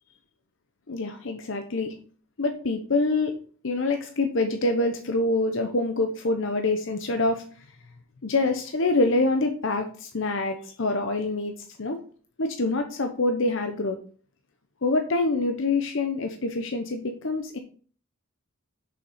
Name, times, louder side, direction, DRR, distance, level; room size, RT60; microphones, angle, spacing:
voice 1, 0.9-1.9 2.4-3.3 3.6-7.4 8.2-12.0 12.4-14.0 14.8-17.6, left 2 dB, 65° left, 6 dB, 0.8 m, -26 dB
6.7 x 5.7 x 4.2 m, 0.42 s
head